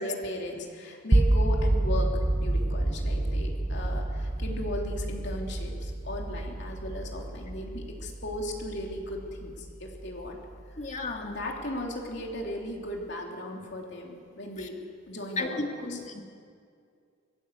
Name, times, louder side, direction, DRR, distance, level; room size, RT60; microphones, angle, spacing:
voice 1, 0.0-2.1 2.4-10.4 10.8-10.9 11.2-16.0, left 1 dB, 60° left, 0 dB, 3.2 m, -37 dB
sound 1, 1.1-11.1, right 1 dB, 20° right, 0.4 m, -28 dB
voice 2, 10.8-11.3 15.4-16.2, left 2 dB, 35° left, 3 dB, 1.9 m, -33 dB
23.0 x 15.5 x 8.2 m, 2.2 s
head